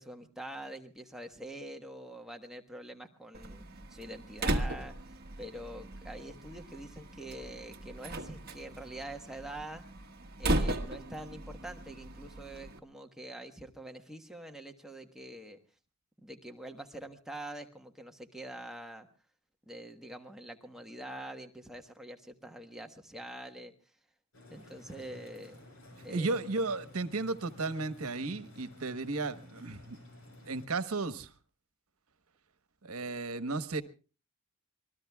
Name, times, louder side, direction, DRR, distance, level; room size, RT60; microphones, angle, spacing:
voice 1, 0.0-3.6 3.9-4.9 5.4-9.8 10.4-15.6 16.2-19.1 19.7-23.7 24.5-25.6 26.0-26.4, right 1 dB, ahead, 4 dB, 1.2 m, -45 dB
Slam, 3.3-12.8, right 1 dB, 45° right, 1.4 m, -37 dB
sound 1, 24.3-30.7, left 1 dB, 70° left, 6.5 m, -53 dB
voice 2, 26.1-30.0 30.5-31.3 32.8-33.8, right 3 dB, 85° right, 11 dB, 1.2 m, -34 dB
26.0 x 20.5 x 2.3 m, 0.34 s
head